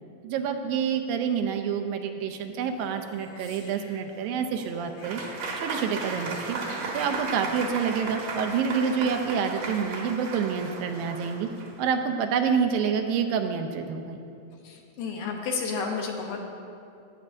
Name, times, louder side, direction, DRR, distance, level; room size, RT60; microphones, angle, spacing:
voice 1, 0.2-5.2 5.6-6.6 6.9-11.5 11.8-14.2, right 6 dB, 85° right, 5 dB, 2.3 m, -28 dB
Speech, 2.6-4.3 4.6-7.7, left 2 dB, 90° left, 3.6 m, -50 dB
Applause / Crowd, 5.0-11.8, right 3 dB, 60° right, 1.8 m, -35 dB
voice 2, 14.6-16.5, left 5 dB, 75° left, 1 dB, 2.3 m, -31 dB
17.0 x 8.2 x 2.6 m, 2.6 s
omnidirectional pair, 4.2 m